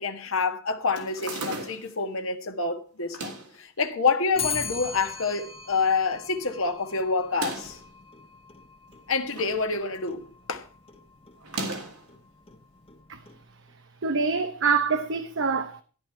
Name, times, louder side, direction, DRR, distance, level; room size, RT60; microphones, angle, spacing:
voice 1, 0.0-7.8 9.1-10.7, left 4 dB, 60° left, 1.6 m, -27 dB
sound 1, 0.9-2.0 3.0-3.6 4.3-5.0 5.4-5.5 5.6-5.7 7.2-7.8 8.9-9.6 9.9-10.3 11.4-12.1, right 2 dB, 90° right, 3.3 m, -36 dB
Clock, 4.4-13.7, left 5 dB, 25° left, 1.3 m, -40 dB
voice 2, 14.0-15.8, right 5 dB, 55° right, 0.9 m, -25 dB
13.5 x 12.0 x 4.5 m
head